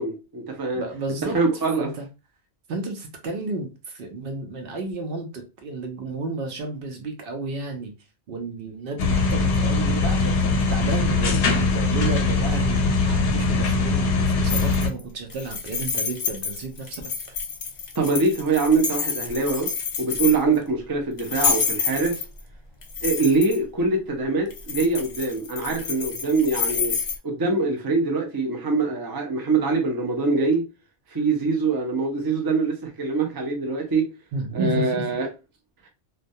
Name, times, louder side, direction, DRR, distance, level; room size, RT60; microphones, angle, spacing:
voice 1, 0.0-0.8 1.3-1.9 18.0-19.7 20.0-22.2 23.0-26.9 27.2-30.6 31.1-34.1 34.5-35.3, right 3 dB, 35° right, 0.3 m, -23 dB
voice 2, 0.7-1.4 1.8-2.1 2.7-7.9 8.3-17.0 34.3-35.1, right 3 dB, 65° right, 0.7 m, -32 dB
sound 1, 9.0-14.9, left 3 dB, 90° left, 0.9 m, -21 dB
sound 2, 14.5-15.0 15.3-20.6 21.2-22.4 22.8-23.6 24.5-27.2, left 5 dB, 50° left, 0.5 m, -28 dB
2.2 x 2.2 x 2.6 m
omnidirectional pair, 1.2 m